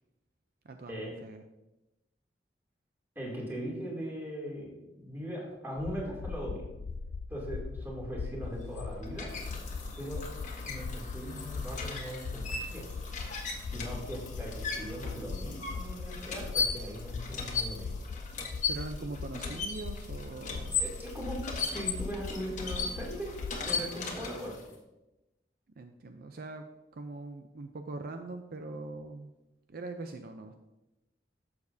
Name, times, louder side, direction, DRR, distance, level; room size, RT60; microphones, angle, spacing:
voice 1, 0.6-1.4 18.7-20.8 25.8-26.6 26.9-29.3 29.7-30.5, right 2 dB, 55° right, 6 dB, 0.5 m, -42 dB
voice 2, 3.1-6.7 7.3-9.3 10.0-10.2 10.6-12.9 13.7-18.0 19.0-19.1 20.7-23.3 23.7-24.6, equal, 10° right, -4 dB, 2.7 m, -39 dB
sound 1, 5.8-23.6, left 4 dB, 85° left, 0.4 m, -40 dB
sound 2, 8.5-24.7, left 4 dB, 45° left, 1.4 m, -38 dB
11.5 x 7.1 x 2.7 m, 0.99 s
head